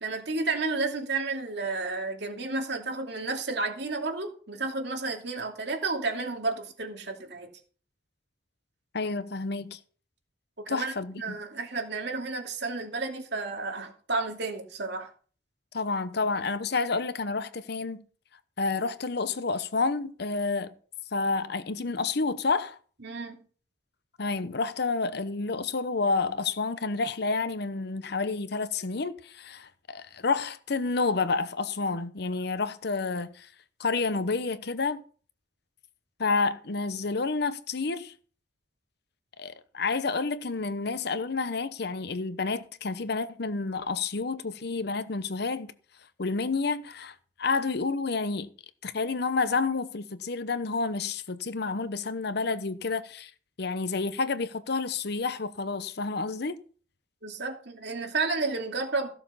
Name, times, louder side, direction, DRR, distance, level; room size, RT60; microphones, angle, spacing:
voice 1, 0.0-7.5 10.6-15.1 23.0-23.4 57.2-59.1, right 3 dB, 65° right, 2.6 m, -31 dB
voice 2, 8.9-9.8 10.7-11.4 15.7-18.0 18.6-20.7 21.1-22.8 24.2-33.5 33.8-35.0 36.2-38.1 39.4-45.7 46.2-48.5 48.8-53.3 53.6-56.6, left 4 dB, 60° left, 0.9 m, -29 dB
15.0 x 7.0 x 5.6 m
head